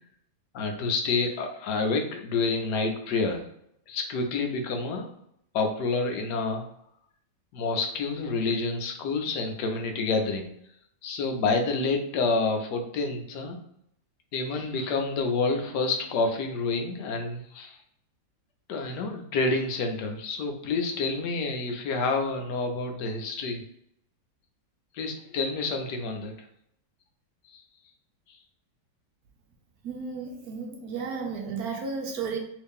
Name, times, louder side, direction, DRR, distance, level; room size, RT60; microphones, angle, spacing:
voice 1, 0.5-3.4 3.9-5.1 5.5-6.6 7.5-10.5 11.0-13.6 14.3-17.8 18.7-23.6 24.9-26.3 27.5-27.6, left 3 dB, 75° left, 4 dB, 1.2 m, -28 dB
voice 2, 29.8-32.4, right 5 dB, 70° right, 2 dB, 1.0 m, -33 dB
3.1 x 2.8 x 3.5 m, 0.74 s
omnidirectional pair, 1.9 m